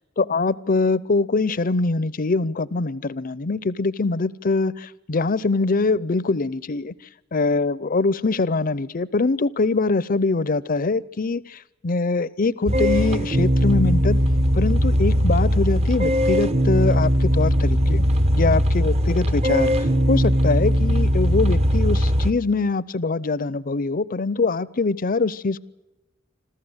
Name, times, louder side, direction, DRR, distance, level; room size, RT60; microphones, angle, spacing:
voice 1, 0.2-6.9 7.3-14.2 14.5-18.0 18.4-25.6, left 3 dB, 45° left, 0.6 m, -23 dB
sound 1, 12.7-22.3, equal, 35° right, 0.9 m, -19 dB
26.5 x 14.5 x 8.0 m
head